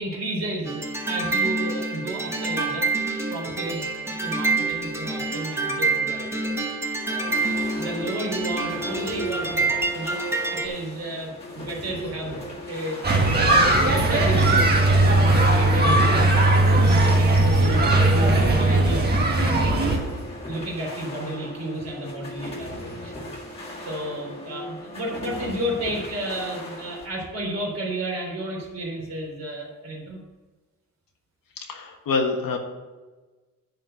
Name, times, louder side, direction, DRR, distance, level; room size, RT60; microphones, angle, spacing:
voice 1, 0.0-2.9 3.3-6.5 7.0-7.4 7.8-10.2 10.5-12.4 12.7-13.0 13.4-16.8 17.2-19.1 19.4-19.9 20.5-23.1 23.8-30.2, right 1 dB, 50° right, -2 dB, 3.4 m, -32 dB
sound 1, 0.7-10.7, right 3 dB, 5° right, 1.0 m, -27 dB
sound 2, 7.3-27.1, left 1 dB, 15° left, 1.9 m, -38 dB
sound 3, 13.0-20.0, right 2 dB, 30° right, 1.5 m, -18 dB
voice 2, 31.7-32.6, left 4 dB, 70° left, 3 dB, 1.5 m, -25 dB
10.5 x 4.5 x 7.7 m, 1.2 s
wide cardioid pair, 170°, 35 cm